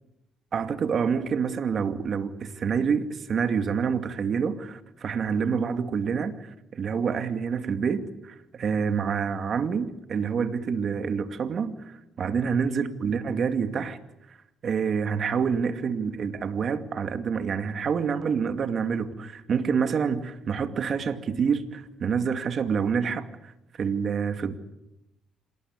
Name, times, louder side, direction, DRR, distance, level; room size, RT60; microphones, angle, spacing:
voice 1, 0.5-14.0 14.3-14.4 14.6-23.5 23.8-24.6, right 6 dB, 50° right, 2.3 m, -27 dB
27.0 x 19.0 x 9.7 m
cardioid pair, 95°, 0 cm